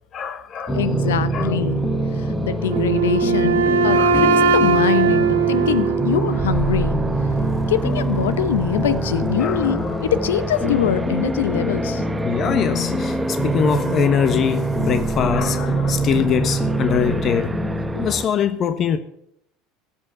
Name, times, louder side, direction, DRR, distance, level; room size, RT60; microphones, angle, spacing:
voice 1, 0.1-0.8 1.3-1.6 3.9-4.2 9.4-10.0 12.2-17.6 18.0-19.0, left 7 dB, 45° left, 1.1 m, -23 dB
voice 2, 0.7-1.8 2.2-7.0 7.7-12.0 17.9-18.0, left 9 dB, 85° left, 0.8 m, -23 dB
sound 1, 0.7-18.1, right 1 dB, 25° left, 1.9 m, -25 dB
sound 2, 0.7-18.3, right 1 dB, 10° right, 1.0 m, -29 dB
Wind instrument woodwind instrument, 2.7-6.6, right 5 dB, 85° right, 1.0 m, -19 dB
16.0 x 5.7 x 9.1 m
hypercardioid pair, 80°, 0 cm